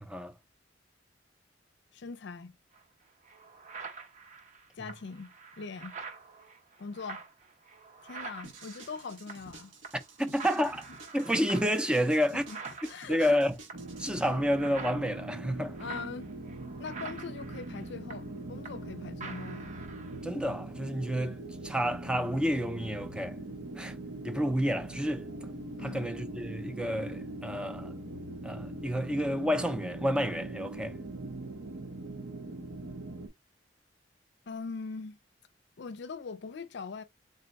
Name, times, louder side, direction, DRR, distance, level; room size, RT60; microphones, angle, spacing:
voice 1, 0.0-0.3 10.2-10.8 11.1-12.4 13.1-13.5 14.0-15.8 20.2-21.4 21.6-23.4 23.8-23.9 24.2-25.3 25.8-27.9 28.4-30.9, equal, 5° right, 0.5 m, -29 dB
voice 2, 1.9-2.6 4.7-6.0 6.8-7.3 8.0-9.7 10.6-10.7 12.0-12.6 12.9-13.4 15.8-16.3 16.8-19.7 25.8-26.1 34.5-35.2 35.8-37.0, left 4 dB, 60° left, 0.5 m, -42 dB
sound 1, 2.7-2.8 3.2-9.6 9.8-10.1 10.4-18.9 19.2-20.2, right 5 dB, 40° right, 0.7 m, -46 dB
sound 2, 8.4-14.3, right 3 dB, 85° right, 1.2 m, -51 dB
sound 3, 13.7-33.3, right 2 dB, 70° right, 0.8 m, -41 dB
3.9 x 2.2 x 4.0 m
head